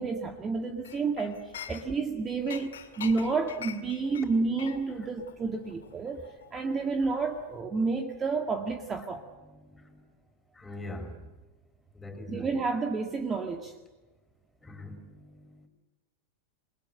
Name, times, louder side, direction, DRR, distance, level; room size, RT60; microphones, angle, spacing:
voice 1, 0.0-6.2 6.5-9.2 12.3-13.7, right 4 dB, 20° right, 5 dB, 2.0 m, -30 dB
Chink clink, 0.8-2.1 2.5-7.1 7.3-7.6, left 9 dB, 65° left, 2.4 m, -45 dB
voice 2, 10.6-11.1 11.9-12.6 14.6-15.5, left 1 dB, 10° left, 5 dB, 5.0 m, -42 dB
29.5 x 21.0 x 7.9 m, 1.2 s
figure-of-eight pair, 90°, 0 cm